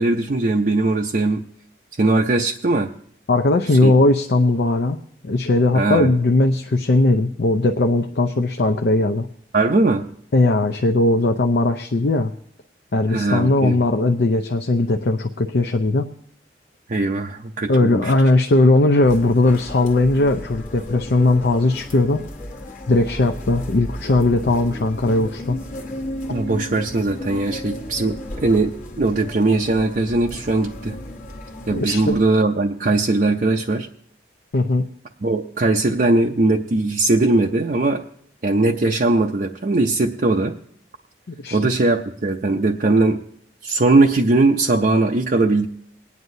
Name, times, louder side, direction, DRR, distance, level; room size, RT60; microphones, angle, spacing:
voice 1, 0.0-1.4 2.0-2.9 3.8-3.9 5.7-6.1 9.5-10.0 13.1-13.8 16.9-18.1 26.3-31.0 31.7-33.9 35.2-38.0 38.4-40.6 41.5-43.2 43.6-45.7, right 2 dB, 50° right, 1 dB, 0.5 m, -19 dB
voice 2, 3.3-9.3 10.3-12.3 12.9-16.1 17.7-22.2 22.9-25.6 31.7-32.2 34.5-34.9 41.3-41.6, left 2 dB, 60° left, 4 dB, 0.6 m, -18 dB
sound 1, 19.0-32.3, left 1 dB, 45° left, 1.2 m, -34 dB
22.0 x 9.5 x 2.7 m, 0.66 s
head